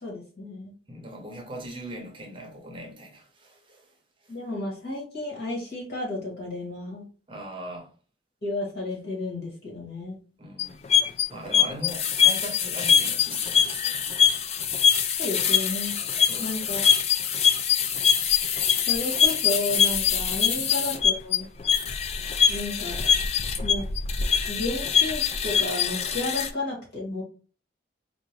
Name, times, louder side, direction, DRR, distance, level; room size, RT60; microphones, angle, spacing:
voice 1, 0.0-0.7 4.3-7.0 8.4-10.2 15.2-15.9 16.4-16.8 18.9-21.5 22.5-23.0 23.6-23.8 24.5-27.2, left 2 dB, 60° left, 2.0 m, -32 dB
voice 2, 0.9-3.9 4.2-4.4 7.3-7.9 10.4-14.1 16.2-16.6 20.6-20.8, equal, 25° right, 0.8 m, -40 dB
sound 1, 10.6-26.5, left 7 dB, 35° left, 0.3 m, -23 dB
4.4 x 2.5 x 3.0 m
head